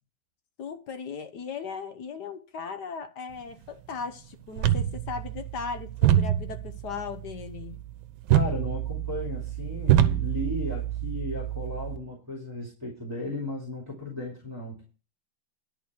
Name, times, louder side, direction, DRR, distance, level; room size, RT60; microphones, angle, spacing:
voice 1, 0.6-7.8, left 5 dB, 60° left, 1.4 m, -37 dB
sound 1, 4.6-12.0, right 11 dB, 75° right, 1.6 m, -26 dB
voice 2, 8.3-14.8, left 2 dB, 10° right, 2.6 m, -35 dB
11.0 x 4.6 x 8.0 m
omnidirectional pair, 2.3 m